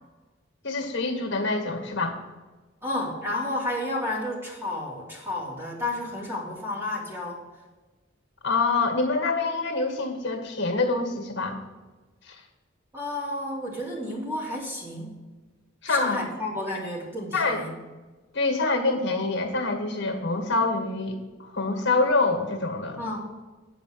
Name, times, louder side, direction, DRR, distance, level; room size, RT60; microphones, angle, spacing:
voice 1, 0.6-2.2 8.4-11.6 12.3-12.4 15.8-16.2 17.3-17.7 18.3-23.0, left 3 dB, 60° left, 4 dB, 1.9 m, -26 dB
voice 2, 2.8-7.4 12.9-15.2 15.8-17.7 23.0-23.3, left 1 dB, 10° right, -4 dB, 2.9 m, -31 dB
9.8 x 5.1 x 8.0 m, 1.2 s
head